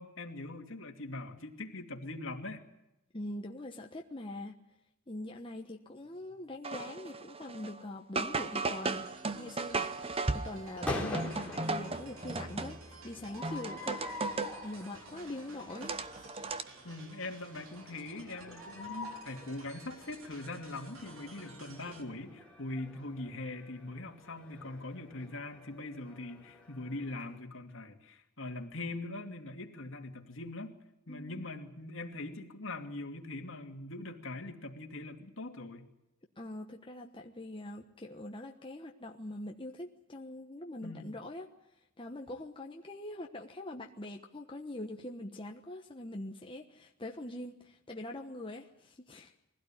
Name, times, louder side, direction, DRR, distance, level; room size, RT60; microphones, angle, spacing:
voice 1, 0.0-2.7 16.8-30.8 31.1-35.9 40.8-41.1, left 2 dB, 65° left, 4 dB, 2.6 m, -42 dB
voice 2, 3.1-4.5 5.1-9.1 9.3-14.0 14.6-16.3 31.1-31.5 36.4-41.5 42.0-49.3, left 1 dB, 25° left, 2 dB, 1.2 m, -43 dB
sound 1, 6.6-7.8 8.2-13.0 13.4-14.7 15.1-16.6, right 3 dB, 25° right, 0.9 m, -36 dB
sound 2, 8.3-22.0, right 3 dB, 75° right, 3.3 m, -55 dB
sound 3, 10.6-27.4, left 2 dB, 5° left, 3.5 m, -45 dB
22.0 x 16.5 x 9.9 m, 0.88 s
head